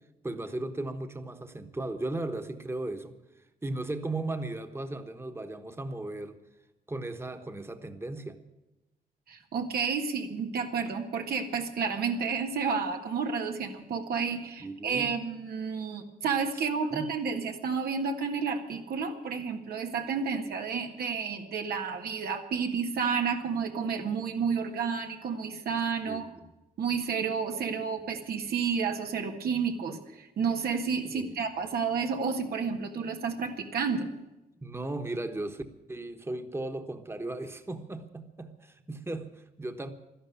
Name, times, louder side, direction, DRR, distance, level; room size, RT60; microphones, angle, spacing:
voice 1, 0.2-3.1 3.6-6.4 6.9-8.4 14.6-15.2 16.9-17.1 26.0-26.2 31.1-31.4 34.6-35.6 35.9-39.9, right 2 dB, 15° right, 7 dB, 1.2 m, -36 dB
voice 2, 9.3-26.3 26.8-34.1, right 5 dB, 90° right, 4 dB, 1.7 m, -31 dB
12.5 x 11.5 x 9.4 m, 0.98 s
cardioid pair, 90°, 15 cm